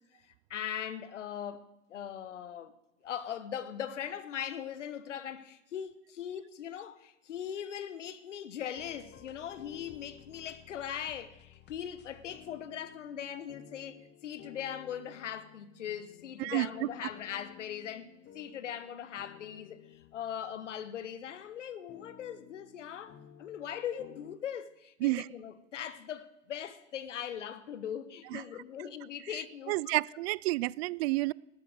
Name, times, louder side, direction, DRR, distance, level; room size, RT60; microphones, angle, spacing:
voice 1, 0.2-2.7 3.0-29.9, left 9 dB, 90° left, 1.1 m, -40 dB
sound 1, 8.7-21.4 21.9-24.4, left 10 dB, 30° left, 0.9 m, -55 dB
voice 2, 16.4-16.9 25.0-25.2 28.3-28.4 29.7-31.3, right 21 dB, 60° right, 0.4 m, -30 dB
13.5 x 10.0 x 6.6 m
hypercardioid pair, 105°, 36 cm